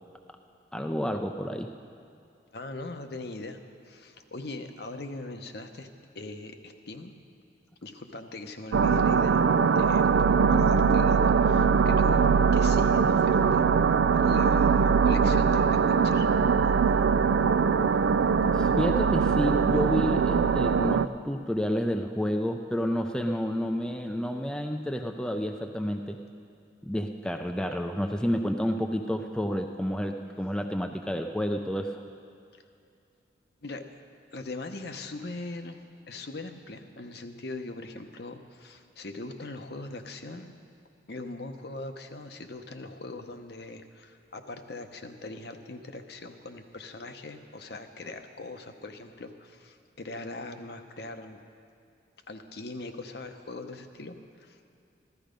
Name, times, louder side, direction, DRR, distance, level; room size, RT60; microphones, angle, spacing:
voice 1, 0.7-1.7 18.5-26.2 26.8-32.0, equal, 5° left, 4 dB, 0.4 m, -30 dB
voice 2, 2.5-3.6 3.9-5.9 6.1-7.1 7.8-9.4 9.7-10.1 10.5-12.3 12.5-13.7 14.2-16.3 33.6-33.8 34.3-40.5 41.1-51.4 52.3-54.7, left 2 dB, 60° left, 6 dB, 0.9 m, -41 dB
sound 1, 8.7-21.1, right 6 dB, 85° right, 0.4 m, -22 dB
15.0 x 13.0 x 5.2 m, 2.5 s
head